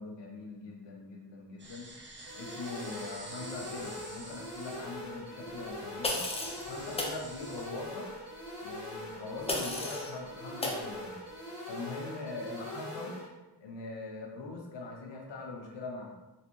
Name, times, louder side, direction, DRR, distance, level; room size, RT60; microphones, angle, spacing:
voice 1, 0.0-1.9 2.3-6.2 6.7-8.1 8.6-11.3 11.7-13.1 13.6-16.1, left 3 dB, 85° left, 0 dB, 0.9 m, -42 dB
sound 1, 1.6-7.6, right 2 dB, 25° right, 0.6 m, -49 dB
sound 2, 2.3-13.3, left 1 dB, 45° right, 1.4 m, -43 dB
sound 3, 6.0-6.6 7.0-7.2 9.5-10.1 10.6-10.8, left 2 dB, 15° left, 0.5 m, -33 dB
3.3 x 2.8 x 3.0 m, 1.1 s
wide cardioid pair, 125°, 42 cm